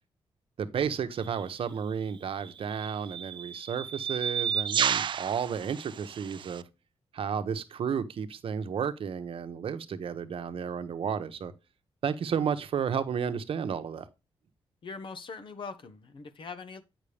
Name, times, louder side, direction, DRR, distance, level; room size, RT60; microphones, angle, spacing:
voice 1, 0.6-6.6 7.1-11.5 12.0-14.1, right 7 dB, 70° right, 0.9 m, -32 dB
sound 1, 1.2-1.4 2.4-6.6, right 8 dB, 55° right, 0.4 m, -32 dB
voice 2, 14.8-16.8, left 4 dB, 60° left, 0.9 m, -42 dB
8.4 x 6.0 x 3.4 m
cardioid pair, 85°, 10 cm